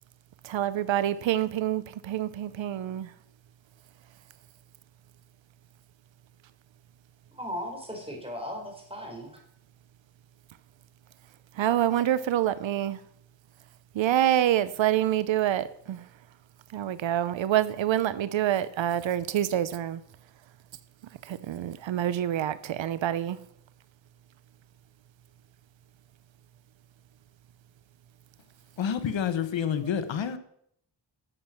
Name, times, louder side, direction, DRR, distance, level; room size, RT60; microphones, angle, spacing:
voice 1, 0.4-3.1 11.6-13.0 14.0-16.0 16.7-20.0 21.3-23.4, right 11 dB, 80° right, 16 dB, 0.7 m, -26 dB
voice 2, 7.3-9.4, equal, 10° right, 1 dB, 4.3 m, -37 dB
voice 3, 28.8-30.4, left 8 dB, 80° left, 11 dB, 1.2 m, -28 dB
12.0 x 7.4 x 5.9 m, 0.69 s
wide cardioid pair, 100°, 45 cm